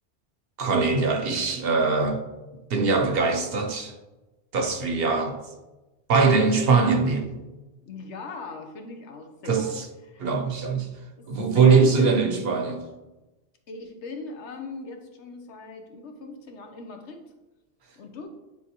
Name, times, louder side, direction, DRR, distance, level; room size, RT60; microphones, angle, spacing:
voice 1, 0.6-2.2 2.7-3.9 4.5-5.4 6.1-7.3 9.5-9.8 10.2-10.9 11.3-12.8, right 4 dB, 65° right, 0.9 m, -22 dB
voice 2, 7.9-9.8 10.0-10.2 11.2-11.3 11.5-12.4 13.7-17.2 17.9-18.3, left 3 dB, 85° left, 1.2 m, -40 dB
9.1 x 3.6 x 3.0 m
omnidirectional pair, 1.1 m